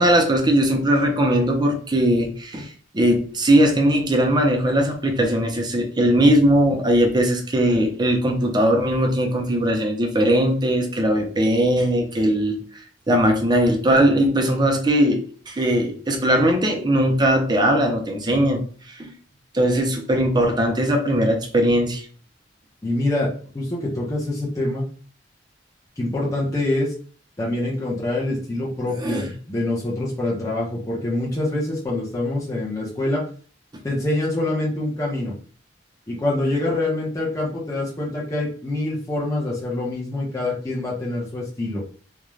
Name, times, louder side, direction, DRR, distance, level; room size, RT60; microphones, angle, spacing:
voice 1, 0.0-2.7 2.9-12.6 13.1-18.6 19.0-19.1 19.5-22.0 29.0-29.3, right 1 dB, 25° right, 2 dB, 0.5 m, -19 dB
voice 2, 22.8-24.8 26.0-26.9 27.4-33.3 33.8-35.3 36.1-41.8, left 2 dB, 20° left, -5 dB, 0.6 m, -25 dB
2.4 x 2.2 x 3.1 m, 0.42 s
head